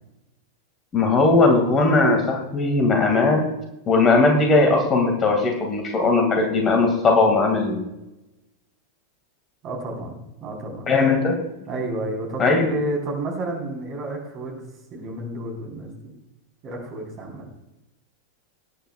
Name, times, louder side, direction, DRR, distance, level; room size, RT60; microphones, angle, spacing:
voice 1, 0.9-3.4 3.9-7.8 10.9-11.4 12.4-12.7, left 3 dB, 25° left, 3 dB, 2.2 m, -18 dB
voice 2, 9.6-10.9 11.7-16.1 16.6-17.4, right 1 dB, 35° right, 1 dB, 4.1 m, -31 dB
20.0 x 10.0 x 2.4 m, 0.96 s
figure-of-eight pair, 90°, 0 cm